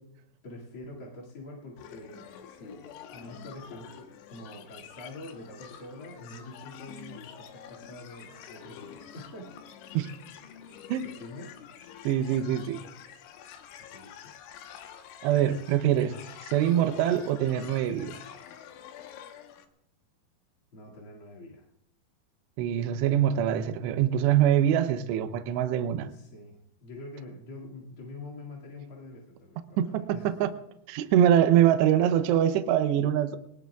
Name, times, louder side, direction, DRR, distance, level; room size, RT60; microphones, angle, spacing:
voice 1, 0.4-9.6 11.0-11.5 13.8-14.3 20.7-21.7 26.0-30.3, left 2 dB, 40° left, 2.3 m, -45 dB
sound 1, 1.8-19.7, left 9 dB, 90° left, 3.5 m, -47 dB
voice 2, 12.0-12.8 15.2-16.2 16.4-18.1 22.6-26.1 29.8-30.5 30.9-33.4, right 10 dB, 80° right, 2.8 m, -24 dB
22.0 x 19.5 x 2.4 m
omnidirectional pair, 5.2 m